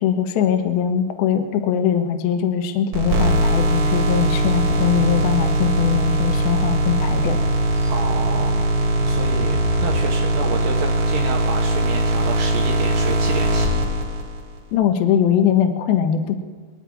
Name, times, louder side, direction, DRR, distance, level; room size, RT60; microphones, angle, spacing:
voice 1, 0.0-7.4 14.7-16.4, left 8 dB, 70° left, 6 dB, 2.4 m, -21 dB
sound 1, 2.9-14.6, right 1 dB, 55° right, 2.0 m, -20 dB
sound 2, 4.4-10.0, left 3 dB, 45° left, 2.1 m, -33 dB
voice 2, 7.9-8.7 9.1-13.7, right 4 dB, 75° right, 0 dB, 2.0 m, -30 dB
25.5 x 8.9 x 4.7 m, 1.5 s
omnidirectional pair, 5.3 m